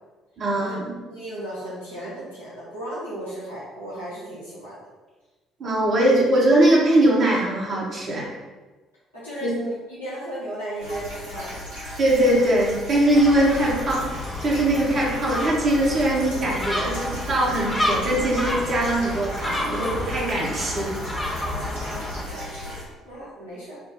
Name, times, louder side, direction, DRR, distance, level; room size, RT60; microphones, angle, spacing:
voice 1, 0.4-1.0 5.6-8.3 9.4-9.5 12.0-21.0, right 1 dB, 45° right, -5 dB, 1.2 m, -21 dB
voice 2, 1.1-4.8 9.1-11.6 21.4-22.7 23.0-23.8, right 1 dB, 80° left, -10 dB, 1.1 m, -36 dB
sound 1, 10.8-22.8, left 1 dB, 85° right, 1.4 m, -36 dB
Gull seagull, 13.1-22.2, left 1 dB, 15° left, 0.7 m, -30 dB
4.7 x 2.3 x 3.8 m, 1.2 s
figure-of-eight pair, 50°, 0 cm